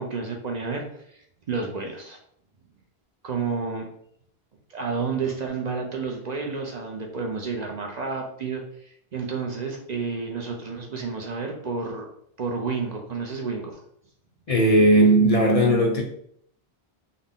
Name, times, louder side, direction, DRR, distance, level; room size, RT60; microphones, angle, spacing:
voice 1, 0.0-2.2 3.2-3.9 4.7-12.1 12.4-13.8, right 4 dB, 50° right, 1 dB, 0.6 m, -30 dB
voice 2, 14.5-16.0, right 1 dB, 45° left, -1 dB, 0.5 m, -17 dB
3.9 x 2.1 x 3.6 m, 0.69 s
omnidirectional pair, 1.0 m